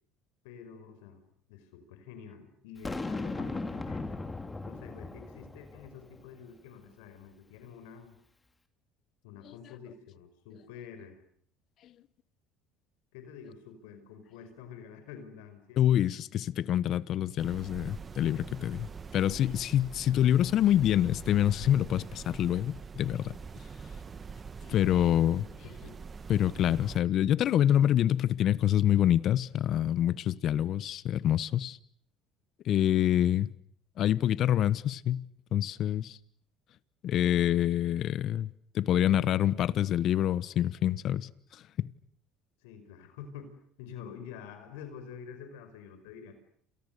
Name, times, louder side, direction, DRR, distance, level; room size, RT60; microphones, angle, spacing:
voice 1, 0.4-1.2 1.5-4.1 4.6-8.2 9.2-11.2 13.1-15.9 25.6-26.0 42.6-46.4, left 7 dB, 85° left, 5.2 m, -48 dB
Boom, 2.8-6.2, left 3 dB, 15° left, 3.0 m, -37 dB
voice 2, 15.8-23.4 24.6-25.4 26.3-31.8 32.6-33.5 34.0-35.2 35.5-36.2 37.0-41.9, left 11 dB, 55° left, 1.1 m, -26 dB
sound 1, 17.4-27.0, right 5 dB, 30° right, 1.6 m, -44 dB
29.5 x 27.5 x 6.8 m
supercardioid pair, 90°, 0 cm